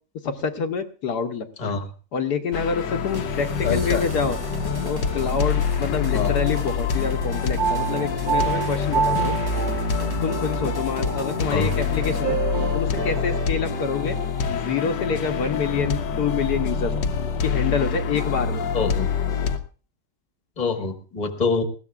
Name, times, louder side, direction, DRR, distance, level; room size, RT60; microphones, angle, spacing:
voice 1, 0.2-1.8 2.1-4.4 4.8-9.4 10.2-12.4 12.7-14.2 14.5-16.9 17.4-18.6, left 6 dB, 70° left, 5 dB, 1.5 m, -27 dB
sound 1, 2.5-19.6, left 6 dB, 85° left, 1.6 m, -26 dB
sound 2, 3.0-12.2, right 1 dB, 20° right, 0.6 m, -39 dB
voice 2, 3.6-4.0 6.1-6.3 11.5-11.7 18.7-19.1 20.6-21.6, left 4 dB, 25° left, 5 dB, 1.5 m, -25 dB
sound 3, 4.5-5.3 6.0-6.6 7.6-13.5, right 7 dB, 65° right, 2.1 m, -29 dB
20.0 x 16.0 x 2.4 m, 0.38 s
omnidirectional pair, 1.8 m